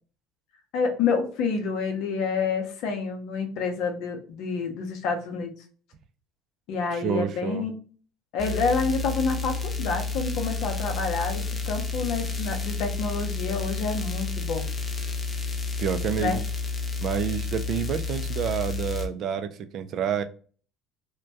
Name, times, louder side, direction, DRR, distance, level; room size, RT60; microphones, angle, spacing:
voice 1, 0.7-5.5 6.7-7.7 8.3-14.7 16.2-16.4, left 4 dB, 65° left, 0.6 m, -28 dB
voice 2, 6.9-7.7 15.8-16.4 17.0-20.2, right 8 dB, 55° right, 0.3 m, -28 dB
sound 1, 8.4-19.1, left 4 dB, 25° left, 0.5 m, -30 dB
2.2 x 2.1 x 2.6 m
hypercardioid pair, 80°, 0 cm